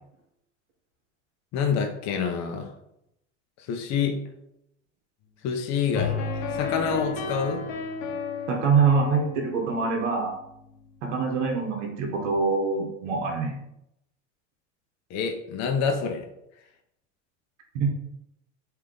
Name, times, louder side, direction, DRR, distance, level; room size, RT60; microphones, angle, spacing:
voice 1, 1.5-2.7 3.6-4.2 5.4-6.2 6.5-7.6 15.1-16.3, left 6 dB, 50° left, 4 dB, 0.7 m, -27 dB
sound 1, 5.9-10.9, left 5 dB, 70° left, 1.0 m, -33 dB
voice 2, 8.5-10.3 11.0-13.6 17.7-17.9, right 5 dB, 80° right, 1 dB, 1.0 m, -24 dB
3.4 x 2.8 x 3.7 m, 0.80 s
hypercardioid pair, 90°, 36 cm